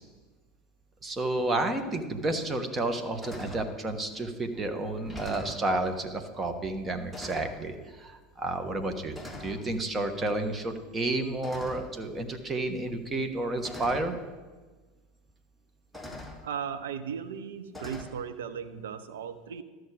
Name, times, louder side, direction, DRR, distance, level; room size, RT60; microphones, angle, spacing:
voice 1, 1.0-9.1 9.4-14.1, right 2 dB, 25° right, 7 dB, 1.3 m, -31 dB
sound 1, 2.1-2.2 2.7-2.9 3.2-3.7 4.5-4.6 5.0-5.6 6.6-6.8 7.1-7.6 8.5-8.8 9.1-9.6 11.4-12.0 13.1-13.2 13.6-14.1 15.3-15.4 15.9-16.4 17.7-18.0, left 1 dB, 5° right, 2.0 m, -42 dB
voice 2, 16.4-19.6, right 7 dB, 70° right, 10 dB, 0.7 m, -36 dB
13.0 x 6.3 x 5.0 m, 1.3 s
figure-of-eight pair, 80°, 0 cm